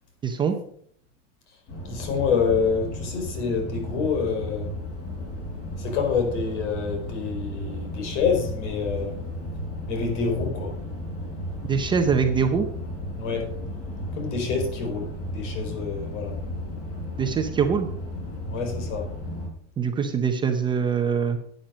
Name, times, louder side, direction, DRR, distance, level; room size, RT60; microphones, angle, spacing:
voice 1, 0.2-0.6 11.7-12.7 17.2-17.9 19.8-21.4, right 6 dB, 15° right, 5 dB, 0.6 m, -23 dB
sound 1, 1.7-19.5, left 1 dB, 40° left, 5.6 m, -34 dB
voice 2, 1.8-4.7 5.8-9.2 9.9-10.7 13.2-13.5 14.1-16.4 18.5-19.1, left 5 dB, 75° left, 3 dB, 4.7 m, -27 dB
11.5 x 9.3 x 5.1 m, 0.63 s
supercardioid pair, 170°, 36 cm